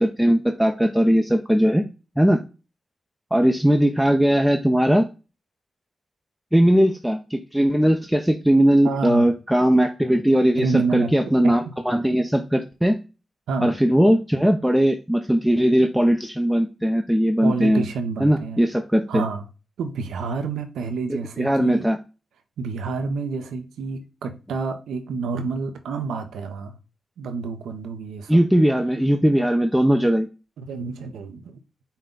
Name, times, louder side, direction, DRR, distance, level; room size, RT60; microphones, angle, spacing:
voice 1, 0.0-1.8 2.2-2.4 3.3-5.0 6.5-10.7 10.9-13.0 13.6-17.8 18.2-19.2 21.4-22.0 28.3-30.3, equal, 5° right, 0.5 m, -19 dB
voice 2, 8.8-9.3 10.6-11.1 11.4-11.5 13.5-13.8 17.4-18.6 19.1-19.4 19.8-21.9 22.6-26.8 27.2-28.4 30.6-31.6, right 4 dB, 85° right, 0.6 m, -28 dB
5.4 x 2.2 x 3.7 m
supercardioid pair, 50°, 0 cm